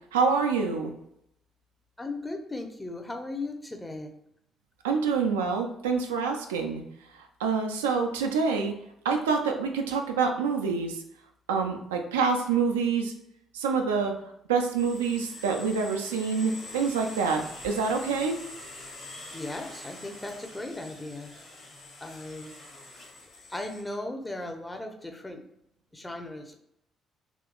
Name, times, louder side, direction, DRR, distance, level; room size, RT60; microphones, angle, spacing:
voice 1, 0.1-0.9 4.8-6.8 7.4-8.8 9.0-11.0 11.5-13.1 13.5-14.1 14.5-18.4, right 5 dB, 80° right, 3 dB, 0.3 m, -26 dB
voice 2, 2.0-4.1 19.3-21.3 22.0-22.5 23.5-25.4 25.9-26.5, left 2 dB, 15° left, 4 dB, 0.6 m, -37 dB
sound 1, 14.8-23.8, left 2 dB, 55° left, 1.3 m, -45 dB
3.6 x 2.9 x 2.2 m, 0.77 s
figure-of-eight pair, 45°, 0 cm